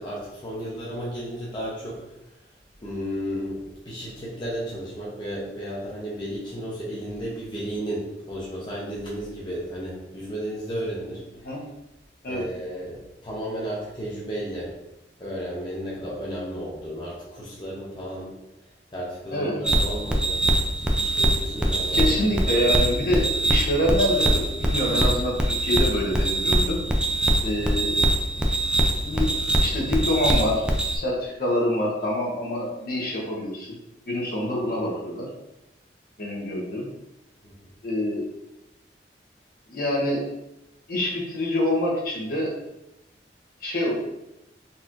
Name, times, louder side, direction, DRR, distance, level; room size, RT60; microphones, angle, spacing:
voice 1, 0.0-2.0 2.8-3.6 3.9-11.2 12.3-14.7 15.2-18.3 18.9-20.5 20.8-22.3 37.4-37.5, equal, 25° left, -6 dB, 0.7 m, -33 dB
voice 2, 19.3-19.6 21.9-26.8 27.4-27.9 29.0-29.3 29.6-30.7 30.9-33.8 34.1-35.3 36.2-36.9 37.8-38.2 39.7-40.2 40.9-42.5 43.6-43.9, left 1 dB, 55° left, -3 dB, 1.0 m, -26 dB
sound 1, 19.6-31.0, right 1 dB, 5° right, 0.4 m, -23 dB
4.0 x 2.9 x 2.5 m, 0.89 s
head